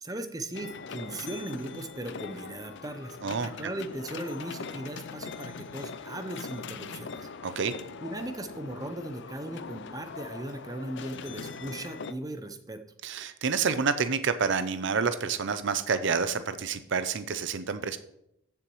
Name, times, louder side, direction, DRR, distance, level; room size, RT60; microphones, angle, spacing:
voice 1, 0.0-7.3 8.0-12.8, right 1 dB, 20° right, 8 dB, 0.7 m, -38 dB
sound 1, 0.5-12.1, left 5 dB, 60° left, 0.5 m, -41 dB
voice 2, 7.4-7.7 13.0-18.0, right 5 dB, 60° right, 12 dB, 0.6 m, -28 dB
14.5 x 6.9 x 3.1 m, 0.79 s
head